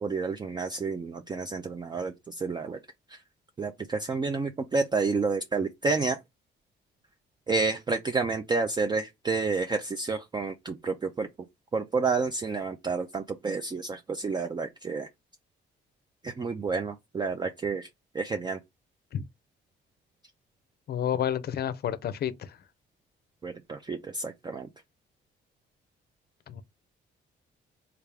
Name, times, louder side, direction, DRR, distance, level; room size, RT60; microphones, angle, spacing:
voice 1, 0.0-2.8 3.6-6.2 7.5-11.3 11.7-15.1 16.2-17.9 18.1-18.6 23.4-24.7, right 4 dB, 20° right, 0.4 m, -30 dB
voice 2, 20.9-22.5 26.5-26.6, left 9 dB, 55° left, 0.5 m, -30 dB
3.3 x 2.4 x 3.3 m
cardioid pair, 90°, 20 cm